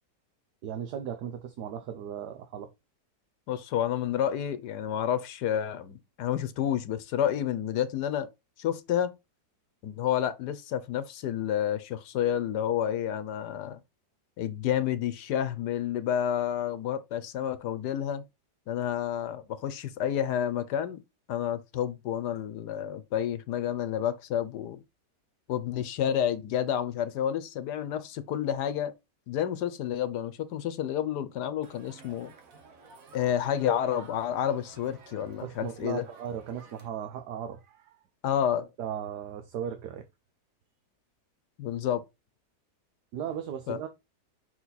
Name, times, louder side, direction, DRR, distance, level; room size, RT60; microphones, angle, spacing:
voice 1, 0.6-2.7 35.4-38.0 38.8-40.0 43.1-43.9, right 9 dB, 70° right, 1.3 m, -37 dB
voice 2, 3.5-8.3 8.6-9.1 9.8-13.8 14.4-18.2 18.7-21.0 21.3-24.8 25.5-28.9 29.3-32.3 33.1-36.0 38.2-38.7 41.6-42.0 43.7-43.8, left 10 dB, 70° left, 1.3 m, -30 dB
Crowd, 31.6-36.9, right 4 dB, 55° right, 1.5 m, -52 dB
5.6 x 4.7 x 4.0 m
omnidirectional pair, 1.9 m